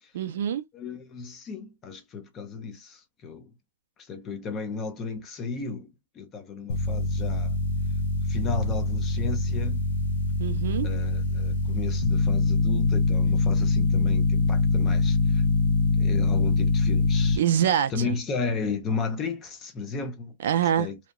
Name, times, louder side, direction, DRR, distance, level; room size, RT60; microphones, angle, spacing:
voice 1, 0.1-0.6 10.4-10.9 17.4-18.2 20.4-20.9, right 9 dB, 60° right, 0.4 m, -25 dB
voice 2, 0.7-3.5 4.0-5.9 6.1-7.5 8.2-9.8 10.8-15.4 16.0-17.4 17.9-20.3 20.8-21.0, left 4 dB, 20° left, 0.4 m, -34 dB
sound 1, 6.7-17.4, left 3 dB, 65° left, 0.5 m, -24 dB
2.7 x 2.1 x 2.2 m
hypercardioid pair, 170°, 0 cm